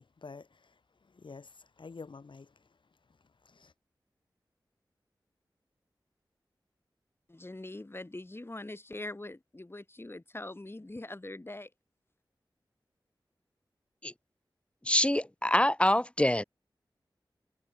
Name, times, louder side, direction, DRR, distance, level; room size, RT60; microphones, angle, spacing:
voice 1, 0.0-2.8 3.1-3.7, left 4 dB, 75° left, 5.1 m, -50 dB
voice 2, 7.3-11.7, left 2 dB, 30° left, 2.2 m, -43 dB
voice 3, 14.8-16.4, left 1 dB, 15° left, 1.0 m, -25 dB
cardioid pair, 45°, 8 cm